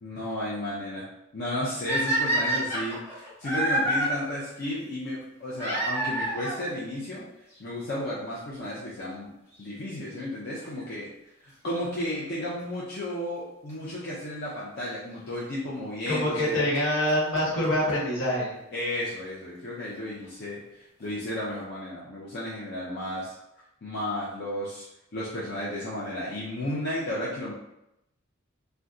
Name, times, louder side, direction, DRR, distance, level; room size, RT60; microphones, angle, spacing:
voice 1, 0.0-1.0 1.3-7.3 7.6-9.3 9.6-11.1 11.4-16.6 18.7-23.3 23.8-24.9 25.1-27.5, left 1 dB, 50° left, -7 dB, 0.6 m, -33 dB
sound 1, 1.9-4.1 5.6-6.6 7.6-7.7 8.3-8.4 8.6-8.7 10.6-10.9 13.7-13.8 14.8-14.9 16.4-16.5 16.7-16.8 17.1-17.2 17.4-17.5 17.6-17.7 17.9-18.0 18.2-18.3, right 1 dB, 15° left, 1.4 m, -27 dB
voice 2, 16.1-18.5, left 1 dB, 80° left, -5 dB, 1.3 m, -25 dB
2.7 x 2.2 x 3.6 m, 0.86 s
head